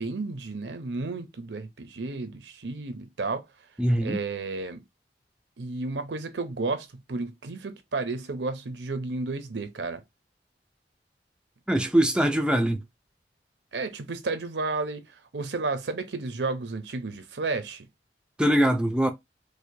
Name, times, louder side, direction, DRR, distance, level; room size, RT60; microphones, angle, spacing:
voice 1, 0.0-3.4 4.0-4.8 5.6-10.0 13.7-17.8, right 3 dB, 80° right, 0.7 m, -32 dB
voice 2, 3.8-4.2 11.7-12.8 18.4-19.1, right 1 dB, 5° right, 0.4 m, -22 dB
4.8 x 2.2 x 2.7 m
head